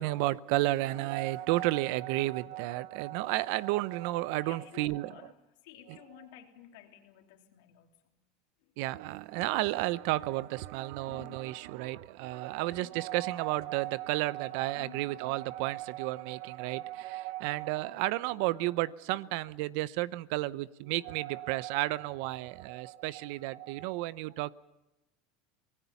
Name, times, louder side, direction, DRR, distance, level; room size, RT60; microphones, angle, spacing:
voice 1, 0.0-5.3 5.9-6.0 8.8-24.5, right 18 dB, 70° right, 19 dB, 0.7 m, -32 dB
voice 2, 4.4-5.3 5.6-8.1 8.6-8.7 11.1-11.5 12.8-12.9 14.7-15.1, left 11 dB, 75° left, 3 dB, 3.3 m, -53 dB
26.5 x 19.0 x 7.1 m, 0.97 s
supercardioid pair, 110°, 0 cm